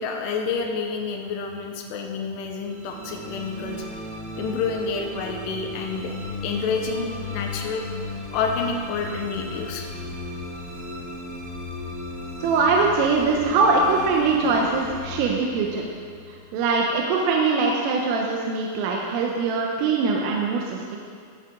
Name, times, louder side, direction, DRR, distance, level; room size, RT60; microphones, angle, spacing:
voice 1, 0.0-3.9 4.4-6.1 6.4-7.8 8.3-9.9, left 5 dB, 85° left, 2 dB, 2.5 m, -28 dB
sound 1, 2.6-17.0, left 2 dB, 25° right, 1.8 m, -36 dB
voice 2, 12.4-15.9 16.3-21.0, right 4 dB, 85° right, -1 dB, 3.5 m, -22 dB
18.5 x 7.6 x 3.7 m, 2.1 s
omnidirectional pair, 5.8 m